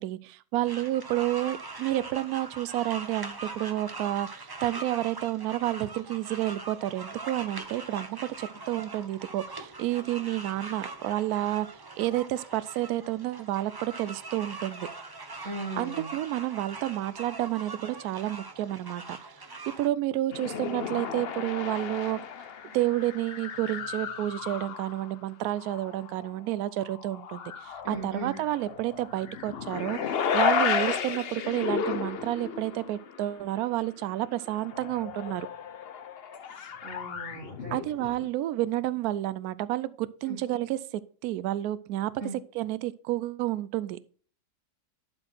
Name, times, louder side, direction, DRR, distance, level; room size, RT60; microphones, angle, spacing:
voice 1, 0.0-14.9 15.8-19.2 19.8-22.2 22.6-35.5 37.7-42.1 42.5-44.1, right 14 dB, 75° right, 17 dB, 1.0 m, -30 dB
sound 1, 0.6-19.9, right 3 dB, 30° right, 0.4 m, -42 dB
voice 2, 15.4-16.1 27.8-28.4 36.5-37.8 40.3-40.4 42.2-42.4, right 2 dB, 50° right, 0 dB, 2.0 m, -38 dB
sound 2, 20.3-25.2 25.6-26.3 26.8-33.4 33.7-33.8 34.0-38.3, left 7 dB, 50° left, 0.7 m, -33 dB
11.5 x 4.5 x 4.4 m, 0.43 s
omnidirectional pair, 1.7 m